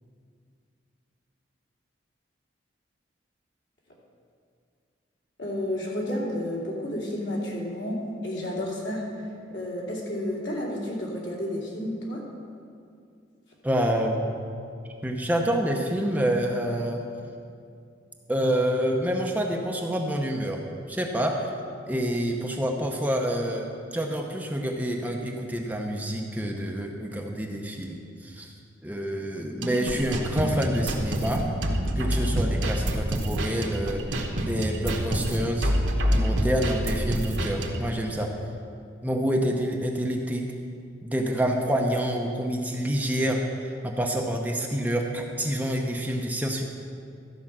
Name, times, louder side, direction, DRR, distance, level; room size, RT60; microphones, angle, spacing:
voice 1, 5.4-9.1 9.5-12.2, left 1 dB, 70° left, -4 dB, 2.7 m, -31 dB
voice 2, 13.6-14.4 15.0-17.0 18.3-20.6 20.9-21.4 21.9-28.5 28.8-31.4 32.0-35.7 36.2-38.3 39.0-40.5 41.0-46.6, equal, 10° right, 1 dB, 0.7 m, -27 dB
sound 1, 29.6-37.9, equal, 70° right, 1.2 m, -27 dB
13.5 x 5.4 x 7.3 m, 2.4 s
head